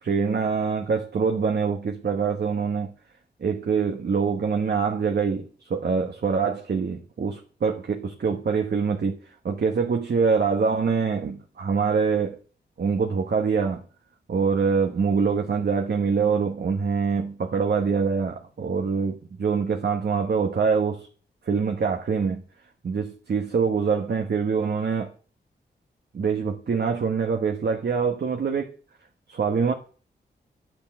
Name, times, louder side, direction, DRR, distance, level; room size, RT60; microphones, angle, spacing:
voice 1, 0.0-2.9 3.4-9.2 9.4-12.4 12.8-13.8 14.3-21.1 21.4-22.4 22.8-25.1 26.1-28.7 29.3-29.7, right 5 dB, 65° right, 1.3 m, -24 dB
10.0 x 6.8 x 7.7 m
cardioid pair, 55°, 18 cm